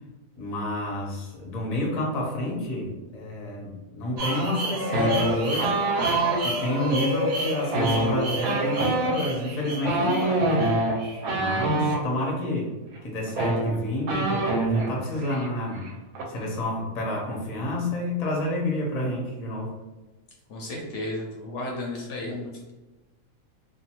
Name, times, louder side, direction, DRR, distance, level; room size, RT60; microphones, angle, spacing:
voice 1, 0.4-5.8 6.4-10.7 11.3-12.7 13.0-15.8 16.3-19.7, left 1 dB, 45° left, -2 dB, 0.5 m, -29 dB
sound 1, 4.2-12.0, equal, 65° right, 0.7 m, -30 dB
sound 2, 4.9-6.4 7.6-12.0 12.9-13.0 13.3-14.9 15.2-15.5 15.7-16.2, right 2 dB, 90° right, 1.0 m, -25 dB
voice 2, 20.5-22.7, left 1 dB, 65° left, -1 dB, 0.8 m, -33 dB
2.5 x 2.3 x 2.8 m, 1.1 s
omnidirectional pair, 1.5 m